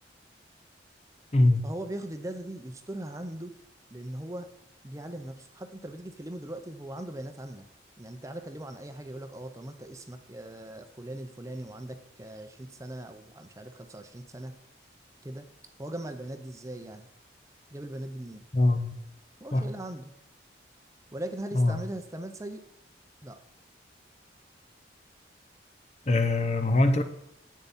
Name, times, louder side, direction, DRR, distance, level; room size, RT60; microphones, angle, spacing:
voice 1, 1.6-3.5 3.9-4.5 4.8-7.7 8.0-14.5 15.2-15.5 15.8-17.1 17.7-18.5 19.4-20.1 21.1-22.6 23.2-23.4, right 1 dB, 15° right, 7 dB, 0.6 m, -39 dB
voice 2, 18.5-19.0 19.5-19.7 21.6-21.8 26.1-27.0, left 2 dB, 35° left, 8 dB, 0.7 m, -23 dB
10.5 x 8.4 x 4.2 m, 0.80 s
head